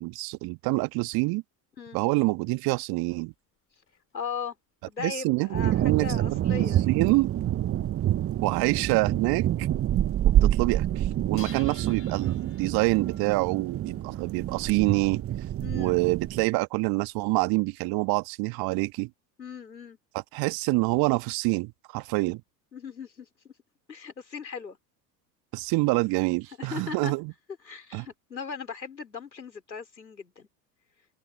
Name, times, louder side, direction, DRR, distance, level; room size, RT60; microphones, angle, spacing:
voice 1, 0.0-1.4 1.9-3.3 5.0-7.3 8.4-9.7 10.4-15.2 15.7-19.1 20.1-22.4 25.5-27.3 27.9-28.1, right 24 dB, 45° right, 1.9 m, -26 dB
sound 1, 2.3-4.2 4.8-6.5 7.1-7.5 7.9-8.0 8.3-8.4 8.6-9.6 9.9-10.5 10.9-18.8, left 6 dB, 25° left, 7.4 m, -55 dB
voice 2, 4.1-4.6 4.9-7.0 15.6-15.9 19.4-20.0 22.7-23.5 23.9-24.8 26.6-27.1 27.6-30.5, left 6 dB, 85° left, 4.8 m, -38 dB
sound 2, 5.5-16.5, right 12 dB, 25° right, 1.2 m, -27 dB
open air
figure-of-eight pair, 80°, 50 cm